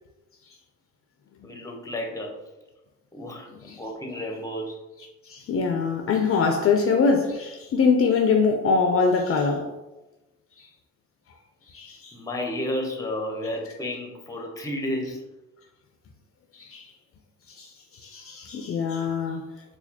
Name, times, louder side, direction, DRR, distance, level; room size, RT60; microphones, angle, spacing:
voice 1, 1.4-2.3 3.1-3.5 3.8-4.8 12.1-15.2, left 1 dB, 10° left, 0.7 m, -31 dB
voice 2, 5.3-9.7 11.7-12.1 16.6-16.8 17.6-17.7 18.0-19.4, left 5 dB, 50° left, 0.4 m, -23 dB
4.0 x 2.4 x 2.7 m
cardioid pair, 90°, 30 cm